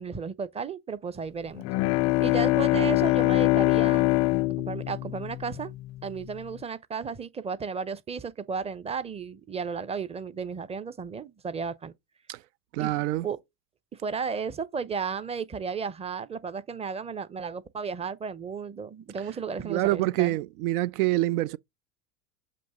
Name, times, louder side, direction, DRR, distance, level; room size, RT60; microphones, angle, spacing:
voice 1, 0.0-1.6 2.2-4.1 4.6-5.7 6.0-11.9 12.8-12.9 13.2-13.4 13.9-20.4, right 5 dB, 15° right, 0.7 m, -34 dB
Bowed string instrument, 1.6-6.1, left 19 dB, 40° left, 0.4 m, -24 dB
voice 2, 12.7-13.3 19.6-21.6, right 17 dB, 75° right, 0.5 m, -26 dB
7.7 x 3.1 x 5.0 m
hypercardioid pair, 90°, 46 cm